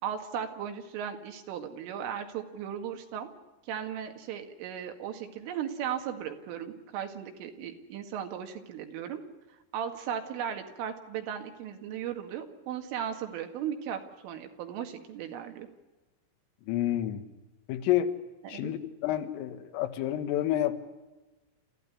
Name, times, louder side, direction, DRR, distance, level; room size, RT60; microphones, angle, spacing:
voice 1, 0.0-3.3 3.7-9.2 9.7-15.7 18.4-18.7, right 9 dB, 80° right, 5 dB, 4.5 m, -36 dB
voice 2, 16.6-17.3 17.7-18.2 18.5-20.8, left 12 dB, 85° left, 9 dB, 4.1 m, -29 dB
28.0 x 15.0 x 9.8 m, 1.2 s
omnidirectional pair, 5.8 m